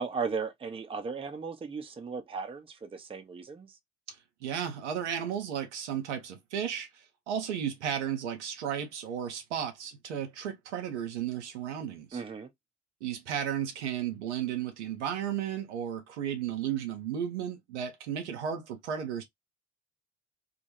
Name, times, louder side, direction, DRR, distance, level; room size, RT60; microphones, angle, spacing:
voice 1, 0.0-3.7 12.1-12.5, right 5 dB, 15° right, 0.6 m, -36 dB
voice 2, 4.1-12.2 13.0-19.2, right 9 dB, 75° right, 0.6 m, -34 dB
2.2 x 2.1 x 2.8 m
figure-of-eight pair, 55°, 35 cm